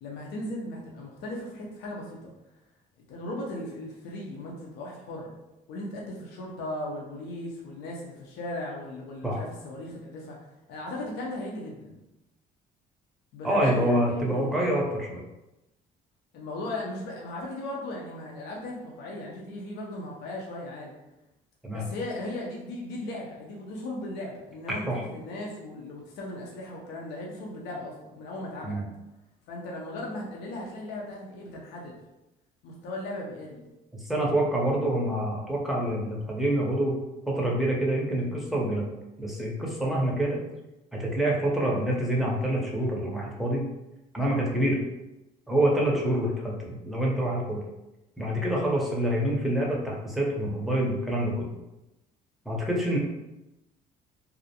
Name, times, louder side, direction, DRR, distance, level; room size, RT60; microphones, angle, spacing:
voice 1, 0.0-2.3 3.1-5.3 5.7-10.4 10.7-12.0 13.3-14.5 16.3-20.9 21.7-28.8 29.5-32.0 32.6-33.6 46.0-46.2, left 1 dB, 85° left, -2 dB, 0.5 m, -37 dB
voice 2, 13.4-15.2 21.6-21.8 24.9-25.0 28.6-28.8 34.0-37.0 37.3-38.8 39.2-40.4 40.9-43.7 44.1-44.8 45.5-47.6 48.2-51.5 52.5-53.0, right 1 dB, ahead, -3 dB, 0.6 m, -26 dB
2.4 x 2.0 x 2.7 m, 0.96 s
cardioid pair, 110°, 17 cm